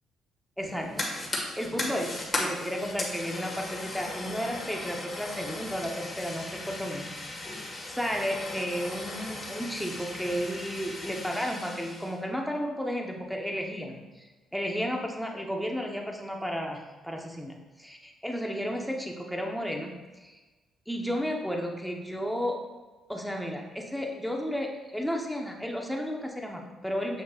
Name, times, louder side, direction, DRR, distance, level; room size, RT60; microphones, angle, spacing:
Fire, 0.6-12.2, left 2 dB, 25° left, 1.6 m, -37 dB
voice 1, 0.6-1.3 1.6-7.1 7.5-7.6 7.9-20.4 20.9-22.6 23.1-27.2, equal, ahead, 1 dB, 0.8 m, -33 dB
7.3 x 6.0 x 2.4 m, 1.2 s
cardioid pair, 90°, 0 cm